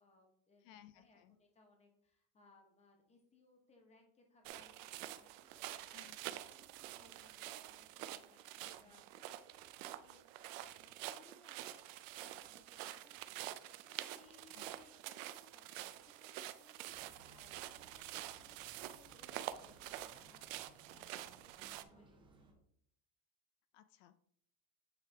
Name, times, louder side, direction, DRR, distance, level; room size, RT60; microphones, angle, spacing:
voice 1, 0.0-6.0 6.5-16.3 16.6-20.4 20.7-22.6, left 3 dB, 15° left, 2 dB, 1.2 m, -68 dB
voice 2, 0.6-1.4 5.9-6.4 8.9-9.0 14.5-14.7 23.7-24.2, left 12 dB, 75° left, 12 dB, 0.5 m, -62 dB
sound 1, 4.5-21.8, right 14 dB, 80° right, 0.6 m, -48 dB
sound 2, 16.9-22.5, right 2 dB, 15° right, 0.6 m, -64 dB
8.9 x 3.3 x 3.4 m, 0.68 s
cardioid pair, 150°, 38 cm